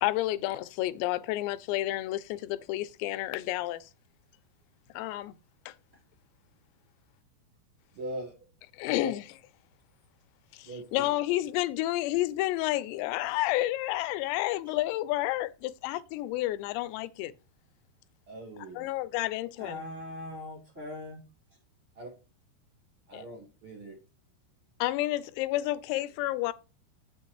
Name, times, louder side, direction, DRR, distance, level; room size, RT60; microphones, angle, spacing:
voice 1, 0.0-3.9 4.9-5.3 5.7-5.8 8.7-9.2 10.5-17.3 18.8-19.8 23.1-23.3 24.8-26.5, left 16 dB, 90° left, 2.8 m, -30 dB
voice 2, 7.9-8.3 9.0-9.1 10.6-11.1 18.3-18.9 21.9-22.1 23.1-23.9, right 1 dB, 60° right, 1.4 m, -40 dB
voice 3, 19.6-21.2, left 2 dB, 20° right, 3.4 m, -40 dB
8.3 x 6.9 x 3.0 m
omnidirectional pair, 4.9 m